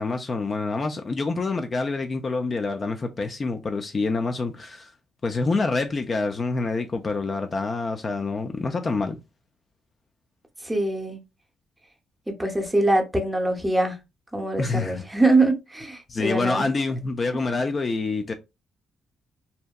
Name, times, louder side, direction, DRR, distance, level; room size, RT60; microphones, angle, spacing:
voice 1, 0.0-4.9 5.2-9.2 14.6-15.1 16.1-18.3, left 3 dB, 35° left, 0.3 m, -26 dB
voice 2, 10.6-11.2 12.4-14.0 14.3-16.7, right 2 dB, 10° right, 0.7 m, -23 dB
2.6 x 2.1 x 2.2 m
cardioid pair, 90°, 0 cm